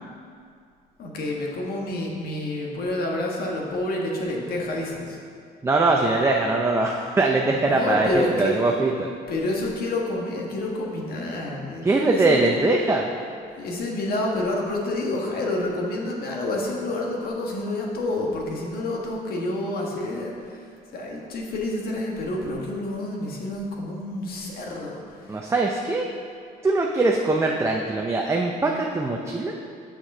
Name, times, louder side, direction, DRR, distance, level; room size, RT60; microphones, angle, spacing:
voice 1, 1.0-5.2 7.7-8.6 9.3-12.5 13.6-25.4, left 2 dB, 65° left, -1 dB, 1.6 m, -28 dB
voice 2, 5.6-9.1 11.8-13.1 25.3-26.1 26.6-29.5, right 2 dB, 15° right, 0 dB, 0.6 m, -22 dB
6.7 x 6.2 x 5.5 m, 2.2 s
cardioid pair, 110°, 17 cm